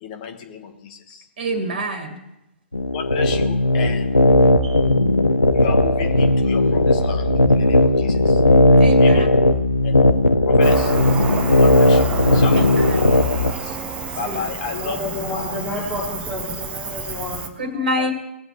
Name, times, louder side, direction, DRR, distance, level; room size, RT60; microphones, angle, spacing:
voice 1, 0.0-1.3 2.9-4.2 5.5-8.4 9.0-9.4 9.8-10.0 10.4-11.0 11.6-12.7 13.5-13.8 14.2-15.5 18.0-18.1, left 7 dB, 35° left, 5 dB, 1.4 m, -33 dB
voice 2, 1.4-2.2 4.6-4.8 8.8-9.3 12.6-13.2 14.3-14.4 17.6-18.1, equal, 50° right, 6 dB, 1.9 m, -26 dB
sound 1, 2.7-13.5, left 1 dB, 90° left, 0.7 m, -16 dB
Cricket, 10.6-17.5, right 5 dB, 15° right, 0.9 m, -30 dB
voice 3, 12.1-12.6 14.7-17.5, left 1 dB, 10° left, -9 dB, 3.4 m, -30 dB
19.5 x 8.0 x 3.2 m, 0.90 s
figure-of-eight pair, 125°, 7 cm